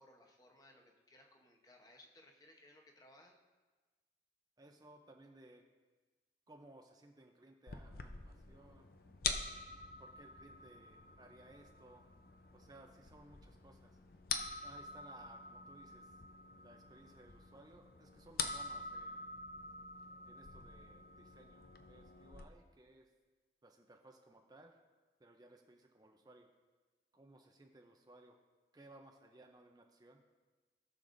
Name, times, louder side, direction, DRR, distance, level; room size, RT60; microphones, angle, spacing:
voice 1, 0.0-3.4, left 1 dB, 20° left, 2 dB, 0.9 m, -62 dB
voice 2, 4.6-5.6 6.5-8.9 10.0-12.1 12.5-14.0 14.6-16.1 16.6-19.3 20.3-23.1 23.6-24.8 25.2-26.5 27.1-28.4 28.7-30.2, right 2 dB, 20° right, 3 dB, 0.6 m, -60 dB
sound 1, 7.7-22.4, left 5 dB, 55° left, 0.6 m, -46 dB
19.0 x 6.6 x 2.6 m, 1.3 s
head